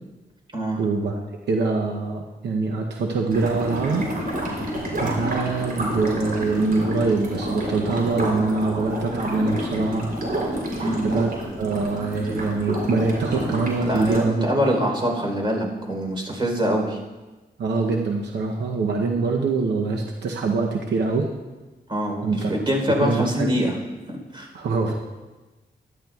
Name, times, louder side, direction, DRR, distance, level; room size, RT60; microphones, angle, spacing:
voice 1, 0.8-1.1 1.5-4.1 5.0-10.1 11.0-14.9 17.6-21.3 22.2-22.5 23.0-23.6 24.5-24.9, right 3 dB, 90° right, 1 dB, 0.8 m, -24 dB
sound 1, 3.3-14.2, equal, 60° right, 3.6 m, -29 dB
voice 2, 13.8-17.0 21.9-23.8 24.1-24.5, equal, 30° right, 0 dB, 3.8 m, -24 dB
13.0 x 12.0 x 2.4 m, 1.2 s
cardioid pair, 65°, 17 cm